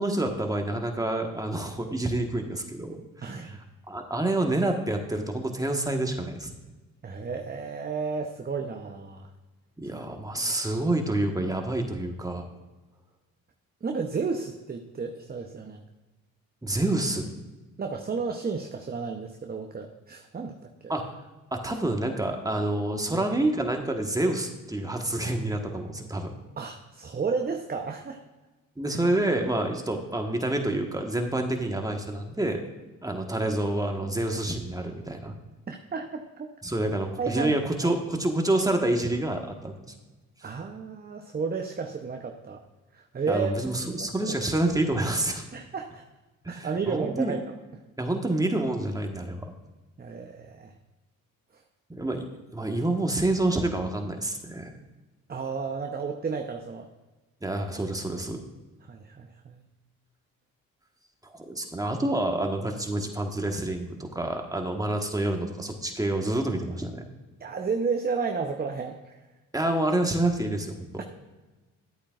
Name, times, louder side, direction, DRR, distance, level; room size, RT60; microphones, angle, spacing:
voice 1, 0.0-3.4 3.9-6.5 9.8-12.4 16.6-17.3 20.9-21.0 21.5-26.4 28.8-32.6 33.0-35.3 36.6-39.9 43.3-45.4 46.4-47.3 48.0-49.5 51.9-52.3 52.5-54.8 57.4-58.4 61.3-67.0 69.5-71.0, right 1 dB, 10° right, 3 dB, 1.4 m, -28 dB
voice 2, 3.2-3.6 7.0-9.3 9.9-10.0 10.3-10.5 13.8-15.8 17.8-20.6 20.8-20.9 23.1-23.2 26.6-28.2 35.7-36.5 37.2-37.5 37.8-37.9 40.4-42.6 42.9-43.5 43.8-44.3 45.5-46.0 46.5-47.4 50.0-50.7 55.3-56.9 58.8-59.7 67.4-69.2 71.0-71.1, right 5 dB, 25° right, 4 dB, 0.8 m, -32 dB
10.5 x 8.4 x 2.5 m, 1.2 s
supercardioid pair, 55°, 36 cm